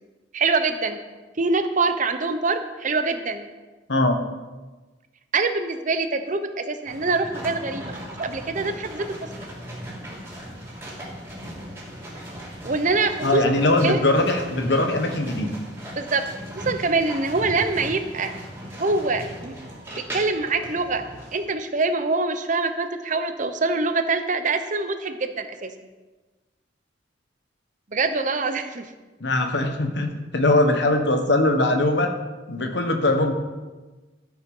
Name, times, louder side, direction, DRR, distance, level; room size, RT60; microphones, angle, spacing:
voice 1, 0.3-1.0 1.4-3.5 5.3-7.9 8.2-9.0 12.6-13.4 13.8-14.0 16.0-16.2 16.5-18.3 18.8-19.6 19.9-21.0 21.3-25.7 27.9-28.9, right 3 dB, 45° right, 8 dB, 0.8 m, -24 dB
sound 1, 6.9-21.4, equal, 15° right, 2.6 m, -37 dB
voice 2, 13.2-15.5 29.2-32.1 32.5-33.3, left 2 dB, 65° left, 5 dB, 1.3 m, -21 dB
13.0 x 6.5 x 5.5 m, 1.2 s
head